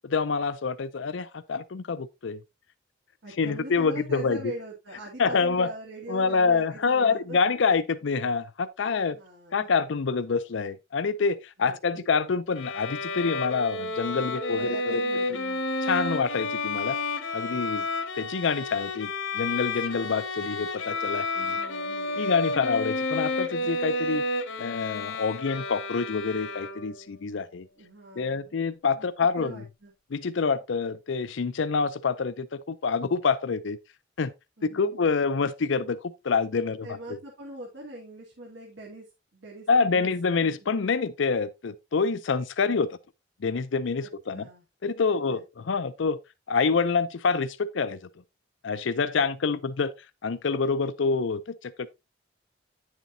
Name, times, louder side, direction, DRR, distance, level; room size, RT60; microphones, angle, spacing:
voice 1, 0.0-2.4 3.4-4.4 5.2-5.7 6.1-9.2 9.5-15.0 15.3-15.4 15.8-17.0 17.3-17.9 18.2-21.6 22.2-24.2 24.6-27.7 28.2-29.6 30.1-33.8 34.2-34.3 34.6-36.0 36.2-36.9 39.7-43.0 43.4-44.5 44.8-46.2 46.5-48.0 48.6-49.9 50.2-51.9, left 5 dB, 75° left, 0.5 m, -26 dB
voice 2, 3.2-7.4 9.1-9.7 11.6-12.1 14.5-15.7 21.5-22.2 27.8-28.6 28.9-29.1 29.4-29.9 34.6-34.9 36.8-39.1 39.3-40.1 40.4-40.5 44.0-44.6 45.1-45.7 49.1-49.6, right 1 dB, 70° right, 2.3 m, -43 dB
Bowed string instrument, 12.6-27.1, left 2 dB, 90° left, 1.3 m, -31 dB
9.4 x 7.2 x 2.7 m
head